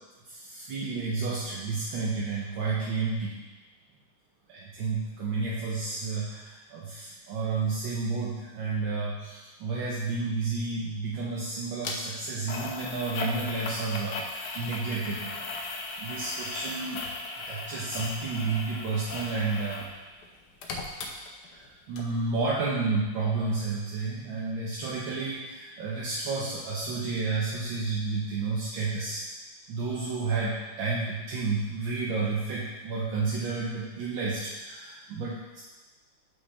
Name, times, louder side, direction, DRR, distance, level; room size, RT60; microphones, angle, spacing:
voice 1, 0.3-3.3 4.5-15.4 16.0-17.0 17.5-19.9 21.5-29.2 29.7-35.6, right 4 dB, 70° right, -5 dB, 1.6 m, -31 dB
sound 1, 11.8-12.0 12.5-19.9 20.2-21.7 22.0-22.1, left 3 dB, 60° left, 1.2 m, -37 dB
8.0 x 5.9 x 3.4 m, 1.2 s
omnidirectional pair, 2.3 m